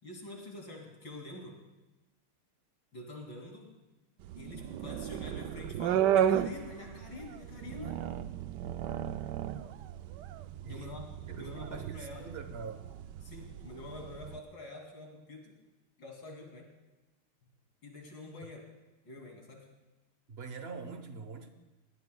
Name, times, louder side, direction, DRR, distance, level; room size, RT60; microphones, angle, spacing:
voice 1, 0.0-1.6 2.9-3.7 4.4-8.0 10.6-12.3 13.2-15.6 16.0-16.7 17.8-18.6 19.0-19.7, left 2 dB, 55° left, 0 dB, 3.3 m, -46 dB
sound 1, 4.2-14.4, right 10 dB, 80° right, 0.9 m, -34 dB
voice 2, 10.6-12.8 20.3-21.5, right 4 dB, 50° right, 7 dB, 0.7 m, -44 dB
20.5 x 17.5 x 2.2 m, 1.1 s
omnidirectional pair, 2.4 m